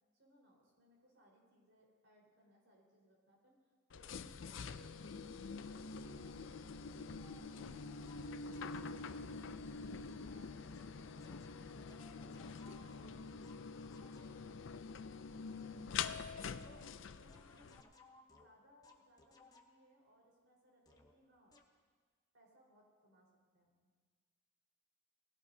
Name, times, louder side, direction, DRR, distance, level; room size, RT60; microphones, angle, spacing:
voice 1, 0.1-3.6 3.9-5.3 5.6-8.3 8.7-9.2 10.2-10.6 11.0-12.6 12.9-13.6 13.9-15.2 15.6-17.7 18.3-21.6 22.3-23.9, equal, 80° right, -3 dB, 4.5 m, -68 dB
sound 1, 3.9-17.8, left 5 dB, 75° left, 0.5 m, -46 dB
sound 2, 7.2-9.2 10.1-14.6 15.5-20.0 20.9-21.2 21.5-21.8, left 3 dB, 20° left, 1.0 m, -65 dB
20.0 x 16.0 x 2.8 m, 1.5 s
head